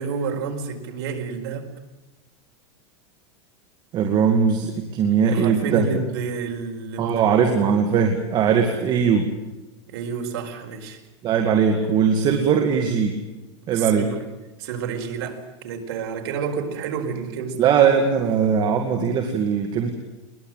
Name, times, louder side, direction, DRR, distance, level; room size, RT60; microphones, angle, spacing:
voice 1, 0.0-1.7 5.2-7.6 9.9-11.0 13.7-14.2 14.6-17.6, right 5 dB, 65° right, 3 dB, 4.6 m, -30 dB
voice 2, 3.9-5.9 7.0-9.3 11.2-13.2 13.7-14.1 17.6-19.9, right 6 dB, 30° right, 4 dB, 2.2 m, -20 dB
22.0 x 20.5 x 9.1 m, 1.0 s
supercardioid pair, 155°, 15 cm